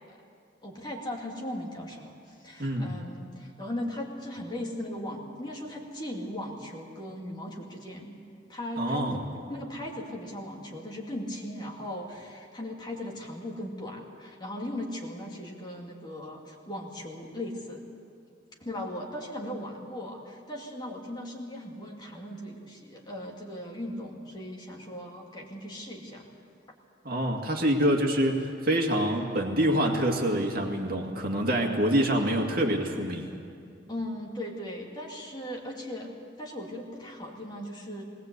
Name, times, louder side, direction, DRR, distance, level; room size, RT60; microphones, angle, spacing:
voice 1, 0.6-8.2 8.5-17.8 18.6-26.2 32.2-32.4 33.9-36.1 36.4-38.0, left 1 dB, 25° left, -1 dB, 2.4 m, -38 dB
voice 2, 2.6-2.9 8.8-9.2 27.0-33.3, right 1 dB, 50° right, 2 dB, 2.1 m, -26 dB
20.0 x 19.0 x 8.2 m, 2.4 s
head